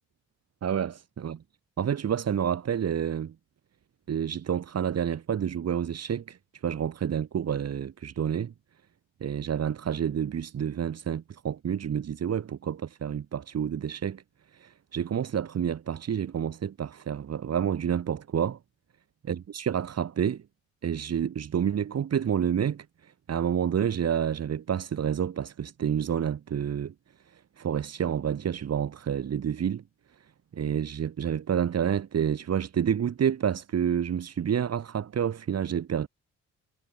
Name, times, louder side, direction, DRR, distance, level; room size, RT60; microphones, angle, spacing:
voice 1, 0.6-1.4 1.8-3.3 4.1-6.4 6.6-8.5 9.2-14.2 14.6-18.6 19.3-20.4 20.8-22.8 23.3-26.9 27.6-29.8 30.5-36.1, right 8 dB, 55° right, 5.9 m, -29 dB
cardioid pair, 90°, 30 cm